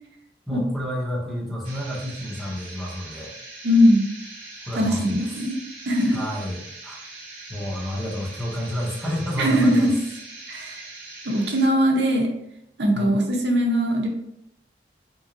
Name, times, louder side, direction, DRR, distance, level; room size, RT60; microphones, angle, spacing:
voice 1, 0.5-3.3 4.6-5.1 6.1-7.0 7.5-9.9 12.9-13.1, equal, ahead, -4 dB, 0.8 m, -30 dB
sound 1, 1.6-11.7, right 2 dB, 45° right, 1.0 m, -41 dB
voice 2, 3.6-4.0 4.8-5.6 5.9-6.2 9.4-10.0 10.5-10.9 11.2-12.3 12.8-14.1, equal, 75° right, 1 dB, 0.7 m, -20 dB
3.7 x 3.1 x 2.5 m, 0.81 s
head